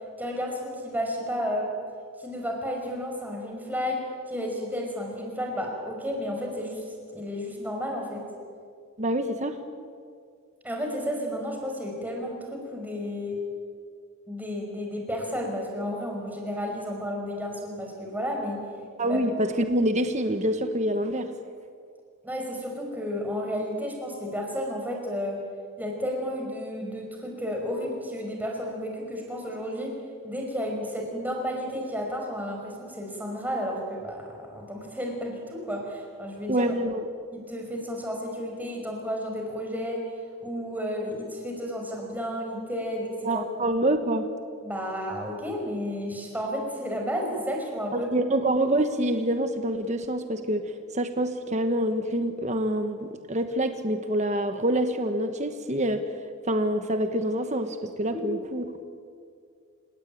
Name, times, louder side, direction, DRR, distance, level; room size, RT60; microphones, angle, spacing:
voice 1, 0.2-1.7 2.2-8.3 10.6-13.4 14.3-18.6 19.1-19.2 22.2-25.4 25.8-29.9 30.2-36.7 37.3-40.0 40.4-43.4 44.6-48.1 58.1-58.3, equal, 10° right, 1 dB, 5.3 m, -32 dB
voice 2, 9.0-9.6 19.0-21.3 36.5-37.1 43.2-44.3 47.9-56.0 56.5-58.8, right 1 dB, 30° right, 7 dB, 1.2 m, -26 dB
29.5 x 18.0 x 9.2 m, 2.2 s
head